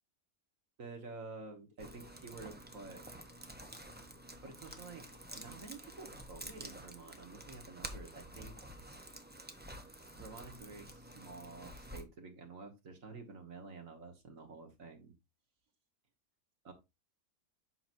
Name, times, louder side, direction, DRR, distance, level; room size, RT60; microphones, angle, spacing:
voice 1, 0.8-3.0 4.4-8.6 10.1-15.1 16.6-16.7, right 3 dB, 65° right, 4 dB, 1.9 m, -50 dB
sound 1, 1.8-12.0, right 1 dB, 10° right, 0.7 m, -50 dB
7.8 x 6.0 x 2.6 m, 0.23 s
omnidirectional pair, 1.5 m